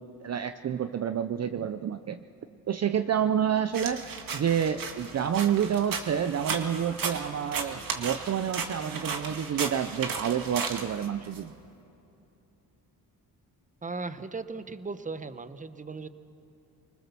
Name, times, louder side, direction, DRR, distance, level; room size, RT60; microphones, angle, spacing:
voice 1, 0.0-2.2 2.7-4.0 4.3-11.5, right 8 dB, 45° right, 10 dB, 0.6 m, -29 dB
sound 1, 3.7-11.4, right 5 dB, 65° right, 2.1 m, -35 dB
voice 2, 13.8-16.1, right 3 dB, 20° right, 12 dB, 0.9 m, -37 dB
25.0 x 20.0 x 7.0 m, 2.8 s
cardioid pair, 85°, 37 cm